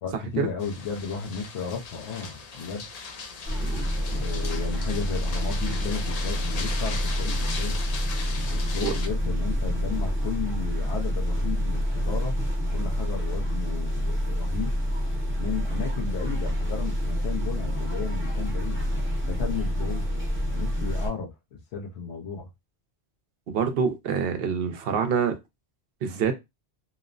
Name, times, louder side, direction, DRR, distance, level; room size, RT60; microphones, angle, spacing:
voice 1, 0.0-2.9 4.1-7.8 8.5-12.4 12.7-14.8 15.4-20.1 20.5-22.5, left 6 dB, 90° left, 0.9 m, -34 dB
sound 1, 0.6-9.1, left 5 dB, 55° left, 0.4 m, -38 dB
sound 2, 3.5-21.1, equal, 15° right, 0.7 m, -27 dB
voice 2, 23.5-25.4 26.0-26.3, right 6 dB, 65° right, 0.8 m, -26 dB
2.9 x 2.0 x 2.4 m
omnidirectional pair, 1.1 m